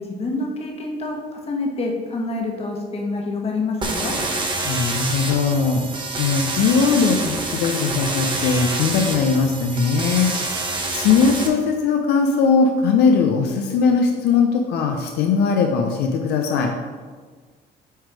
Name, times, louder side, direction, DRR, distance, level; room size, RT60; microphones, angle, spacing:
voice 1, 0.0-4.1, left 3 dB, 35° left, 0 dB, 1.4 m, -27 dB
sound 1, 3.8-11.5, right 2 dB, 30° right, 1.1 m, -27 dB
voice 2, 4.6-5.8 6.2-10.3 10.9-16.7, left 5 dB, 80° left, 3 dB, 0.7 m, -19 dB
7.9 x 3.3 x 4.8 m, 1.5 s
cardioid pair, 110°, 17 cm